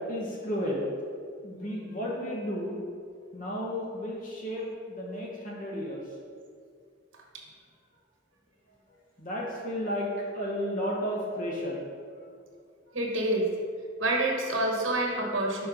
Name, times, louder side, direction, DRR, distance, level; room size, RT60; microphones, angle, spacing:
voice 1, 0.1-0.8 1.4-2.8 3.3-6.0 9.2-11.8, equal, 45° left, -4 dB, 1.0 m, -33 dB
voice 2, 12.9-13.5 14.0-15.7, right 1 dB, 90° right, 0 dB, 1.2 m, -27 dB
5.7 x 4.3 x 5.0 m, 2.2 s
head